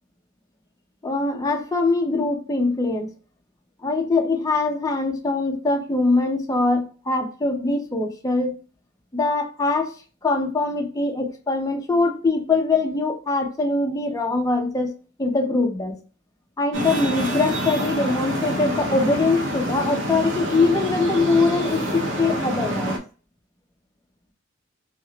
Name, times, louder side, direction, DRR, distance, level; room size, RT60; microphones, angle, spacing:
voice 1, 1.0-3.1 3.8-8.6 9.1-9.9 10.2-14.9 15.2-16.0 16.6-23.0, left 3 dB, 20° left, 0.6 m, -22 dB
Traffic noise roadway noise, 16.7-23.0, equal, 70° right, 0.8 m, -27 dB
2.7 x 2.5 x 2.8 m
head